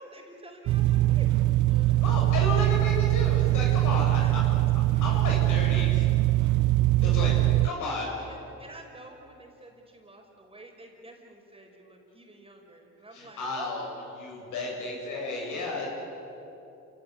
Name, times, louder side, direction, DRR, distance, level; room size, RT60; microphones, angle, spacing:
voice 1, 0.0-1.4 1.7-2.2 4.0-4.3 4.9-5.3 7.5-7.9 8.3-13.8, right 1 dB, 20° right, 2 dB, 5.1 m, -49 dB
sound 1, 0.7-7.7, right 16 dB, 75° right, 0.6 m, -22 dB
voice 2, 2.0-4.5 5.0-6.1 7.0-8.1 13.1-13.8 14.2-15.9, left 2 dB, 80° left, -1 dB, 7.7 m, -33 dB
28.0 x 17.0 x 9.9 m, 2.9 s
cardioid pair, 90°, 30 cm